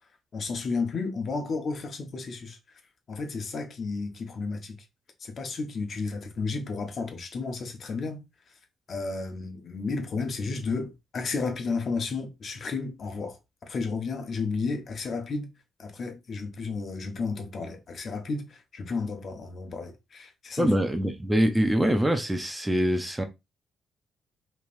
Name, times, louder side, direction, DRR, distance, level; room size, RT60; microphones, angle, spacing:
voice 1, 0.3-2.6 3.1-4.8 5.2-8.2 8.9-15.5 15.8-20.7, left 4 dB, 50° left, 1.2 m, -32 dB
voice 2, 20.6-23.2, right 1 dB, 10° right, 0.7 m, -24 dB
5.2 x 3.3 x 2.6 m
cardioid pair, 90°, 0 cm